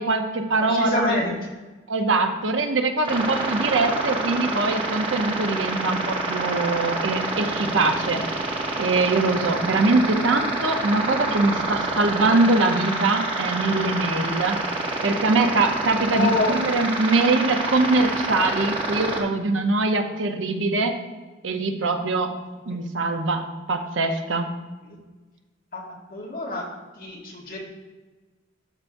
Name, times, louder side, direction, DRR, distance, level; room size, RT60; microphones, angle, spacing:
voice 1, 0.0-1.2 1.9-8.2 8.8-14.6 15.0-20.9 21.4-22.3 22.7-24.5, right 3 dB, 80° right, 5 dB, 0.8 m, -23 dB
voice 2, 0.6-1.3 16.1-16.6 22.7-22.8 24.8-25.0 25.7-25.8 26.1-26.6 27.0-27.6, left 2 dB, 50° left, -4 dB, 2.0 m, -26 dB
sound 1, 3.0-19.2, right 2 dB, 25° right, 1.1 m, -27 dB
12.5 x 5.6 x 2.7 m, 1.2 s
head